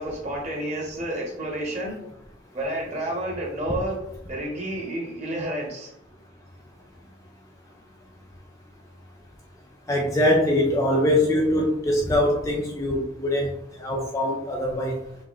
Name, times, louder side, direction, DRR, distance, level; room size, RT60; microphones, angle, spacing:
voice 1, 0.0-2.0 2.5-4.0 4.3-5.9, right 1 dB, 35° right, -3 dB, 1.4 m, -30 dB
voice 2, 9.9-13.5 13.8-15.0, left 1 dB, 15° left, 0 dB, 0.4 m, -22 dB
5.9 x 2.5 x 3.1 m, 0.82 s
head